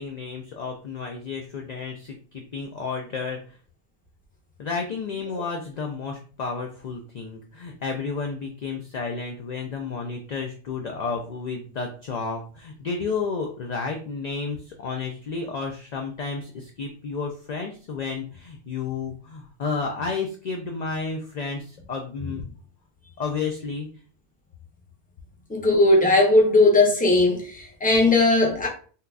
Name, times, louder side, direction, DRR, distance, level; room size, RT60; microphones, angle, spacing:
voice 1, 0.0-3.6 4.6-22.4 23.2-23.9, left 4 dB, 60° left, 0.4 m, -31 dB
voice 2, 25.5-28.7, left 2 dB, 10° left, 0.6 m, -18 dB
3.7 x 2.8 x 2.3 m
omnidirectional pair, 1.2 m